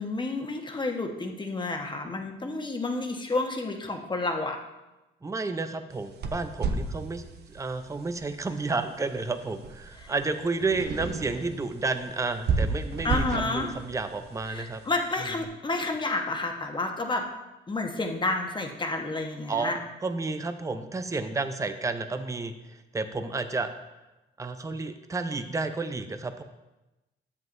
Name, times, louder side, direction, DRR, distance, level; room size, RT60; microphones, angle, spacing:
voice 1, 0.0-4.6 10.0-10.1 13.0-13.7 14.5-17.3 17.7-19.8, left 2 dB, 25° left, 3 dB, 1.2 m, -30 dB
voice 2, 5.2-14.8 19.5-19.7 20.0-23.7 24.4-26.4, right 3 dB, 15° right, 8 dB, 0.6 m, -31 dB
sound 1, 5.9-15.3, right 4 dB, 55° right, 0.7 m, -34 dB
10.5 x 7.5 x 2.6 m, 1.0 s
cardioid pair, 90°, 20 cm